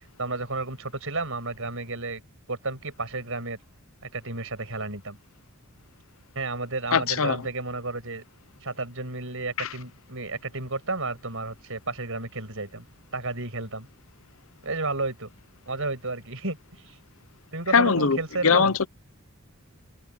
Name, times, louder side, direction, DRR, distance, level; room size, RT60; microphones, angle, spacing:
voice 1, 0.2-2.2 2.5-3.6 4.1-5.2 6.3-8.2 8.6-12.9 13.1-13.9 14.6-15.3 15.7-16.6 16.8-17.0 17.5-18.8, right 3 dB, 65° right, 6.9 m, -32 dB
voice 2, 6.9-7.4 9.6-9.7 17.7-18.2 18.4-18.9, left 5 dB, 65° left, 0.9 m, -20 dB
head